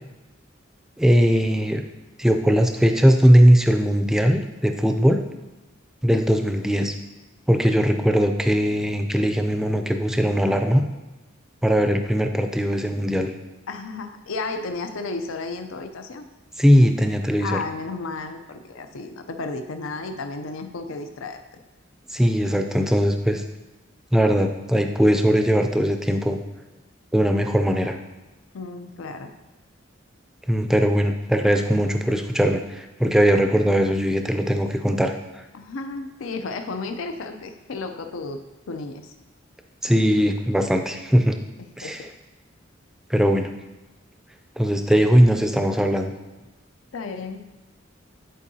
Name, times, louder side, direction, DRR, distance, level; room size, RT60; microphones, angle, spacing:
voice 1, 1.0-1.8 2.2-5.2 6.0-6.9 7.5-10.8 11.6-13.3 16.6-17.6 22.1-23.4 24.1-26.4 27.1-28.0 30.5-35.4 39.8-41.4 41.8-42.0 43.1-43.5 44.6-46.1, equal, 5° right, 5 dB, 0.3 m, -19 dB
voice 2, 13.7-16.3 17.4-21.4 28.5-29.3 35.5-38.4 38.7-39.1 41.8-42.1 46.9-47.4, left 3 dB, 90° left, 7 dB, 0.5 m, -33 dB
10.0 x 4.5 x 2.7 m, 1.1 s
head